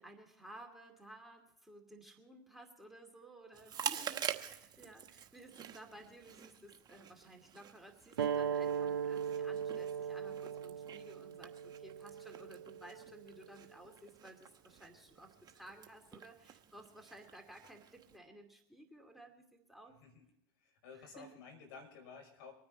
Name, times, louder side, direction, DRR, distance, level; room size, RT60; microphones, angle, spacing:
voice 1, 0.0-20.0 20.9-21.3, right 1 dB, ahead, 2 dB, 2.6 m, -56 dB
Chewing mastication, 3.5-18.2, right 8 dB, 35° right, 1.3 m, -47 dB
sound 1, 8.2-13.3, right 7 dB, 85° right, 0.6 m, -38 dB
voice 2, 20.6-22.5, left 5 dB, 65° left, 4 dB, 5.4 m, -53 dB
24.5 x 9.8 x 4.3 m, 0.79 s
hypercardioid pair, 90°, 12 cm